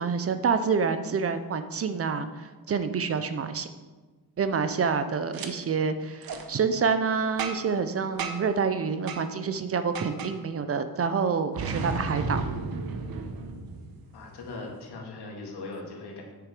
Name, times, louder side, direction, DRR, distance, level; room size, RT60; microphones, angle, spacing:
voice 1, 0.0-3.7 4.4-12.4, right 5 dB, 40° right, 10 dB, 0.5 m, -27 dB
Boom, 5.3-5.5 6.2-6.4 7.4-7.8 8.2-8.5 9.1-9.2 9.9-10.3 11.5-14.2, right 4 dB, 65° right, 1.0 m, -33 dB
voice 2, 11.7-12.2 14.1-16.2, left 2 dB, 85° left, -1 dB, 2.2 m, -39 dB
9.4 x 6.6 x 4.8 m, 1.3 s
wide cardioid pair, 175°, 39 cm